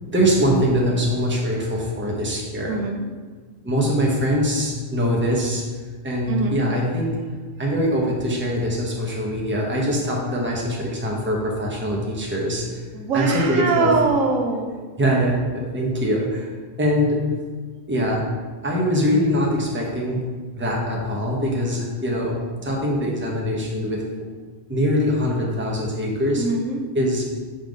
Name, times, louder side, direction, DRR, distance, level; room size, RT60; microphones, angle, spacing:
voice 1, 0.1-2.8 3.6-7.2 7.6-12.8 13.1-13.9 15.0-16.5 16.8-17.2 17.9-18.2 18.6-20.2 20.5-22.4 22.6-24.0 24.7-26.4 26.9-27.3, equal, 10° right, -2 dB, 0.9 m, -23 dB
voice 2, 2.7-3.0 6.3-6.7 12.9-14.7 26.4-26.8, right 4 dB, 90° right, 3 dB, 1.2 m, -22 dB
5.7 x 3.5 x 5.2 m, 1.5 s
omnidirectional pair, 1.3 m